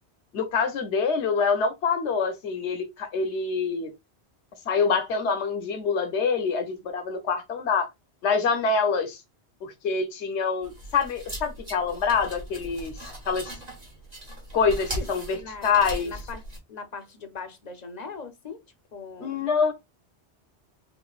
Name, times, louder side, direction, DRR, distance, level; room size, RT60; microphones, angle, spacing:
voice 1, 0.3-3.9 4.6-7.9 8.2-9.2 9.6-13.6 14.5-16.1 19.2-19.7, left 5 dB, 85° left, 1.1 m, -26 dB
sound 1, 10.6-16.6, right 1 dB, 40° right, 1.5 m, -38 dB
voice 2, 15.3-16.4 16.7-18.6 18.9-19.4, left 4 dB, 45° left, 0.8 m, -40 dB
5.2 x 2.5 x 2.3 m
omnidirectional pair, 1.1 m